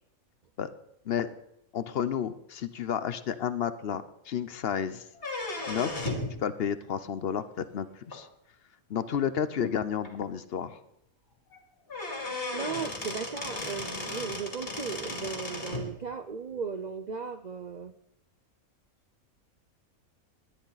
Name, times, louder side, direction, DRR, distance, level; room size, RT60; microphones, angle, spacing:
voice 1, 1.7-5.0 5.7-6.1 6.4-8.3 8.9-10.8, left 8 dB, 55° left, 13 dB, 0.7 m, -31 dB
sound 1, 5.1-6.3 8.1-8.2 9.1-9.2 9.6-9.7 10.0-10.1 11.5-11.6 11.9-15.9, left 2 dB, 40° left, 2.6 m, -35 dB
voice 2, 12.5-17.9, right 5 dB, 65° right, 10 dB, 0.4 m, -36 dB
19.0 x 11.0 x 4.0 m, 0.83 s
omnidirectional pair, 1.5 m